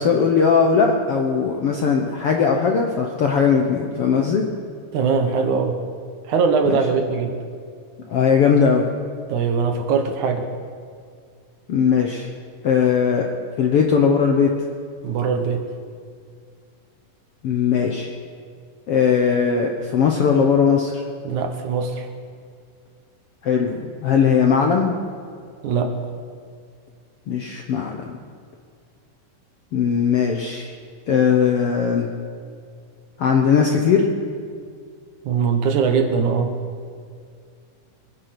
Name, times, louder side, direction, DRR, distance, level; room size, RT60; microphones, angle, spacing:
voice 1, 0.0-4.4 6.7-6.8 8.1-8.9 11.7-12.3 12.6-13.3 13.6-14.5 17.4-18.1 18.9-21.0 23.4-25.0 27.3-28.0 29.7-30.7 31.1-32.1 33.2-34.1, left 6 dB, 65° left, 2 dB, 1.5 m, -19 dB
voice 2, 4.9-5.8 6.3-7.4 9.3-10.5 15.0-15.6 21.2-22.1 25.6-26.0 35.3-36.5, right 5 dB, 65° right, 5 dB, 2.4 m, -21 dB
23.0 x 10.0 x 6.0 m, 2.2 s
omnidirectional pair, 4.0 m